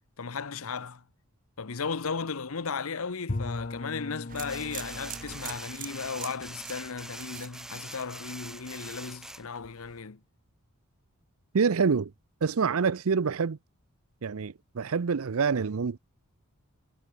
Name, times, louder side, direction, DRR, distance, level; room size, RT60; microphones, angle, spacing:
voice 1, 0.2-1.0 1.6-10.2, left 5 dB, 70° left, 0.9 m, -35 dB
Bowed string instrument, 3.3-8.1, left 2 dB, 40° left, 0.9 m, -40 dB
sound 1, 4.3-8.3 8.6-9.1, right 10 dB, 40° right, 0.8 m, -44 dB
sound 2, 4.5-10.0, right 1 dB, ahead, 0.3 m, -44 dB
voice 2, 11.5-12.1 12.4-13.6 14.2-16.0, right 5 dB, 70° right, 0.6 m, -26 dB
head